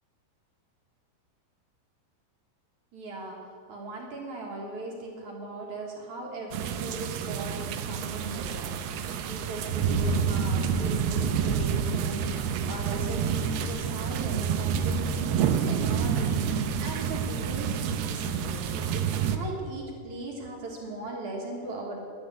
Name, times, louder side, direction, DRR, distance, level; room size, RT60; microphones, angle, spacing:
voice 1, 2.9-22.0, right 2 dB, 55° right, -1 dB, 2.7 m, -39 dB
sound 1, 6.5-19.4, right 7 dB, 80° right, 2.6 m, -28 dB
11.5 x 10.5 x 7.8 m, 2.4 s
omnidirectional pair, 4.7 m